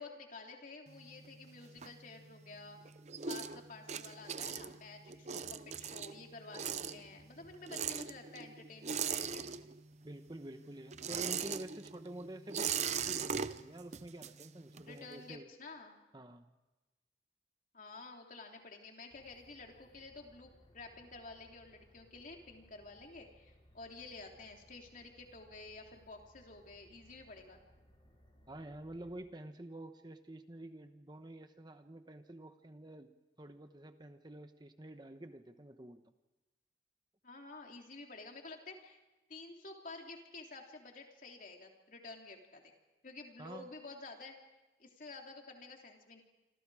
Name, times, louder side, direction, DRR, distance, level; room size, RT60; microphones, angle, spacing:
voice 1, 0.0-2.8 3.3-9.4 14.8-16.0 17.7-27.6 37.2-39.0 39.3-42.7 43.0-44.3 44.8-46.2, left 3 dB, 50° left, 2 dB, 3.3 m, -51 dB
sound 1, 0.9-2.5 2.8-10.0 10.3-15.0, right 7 dB, 40° right, 0.8 m, -40 dB
voice 2, 10.0-15.5 16.1-16.5 28.5-33.1 33.4-36.0 43.4-43.7, right 1 dB, 25° right, 8 dB, 1.1 m, -49 dB
sound 2, 19.1-29.2, equal, 30° left, 5.8 m, -65 dB
27.0 x 26.5 x 4.9 m, 1.1 s
head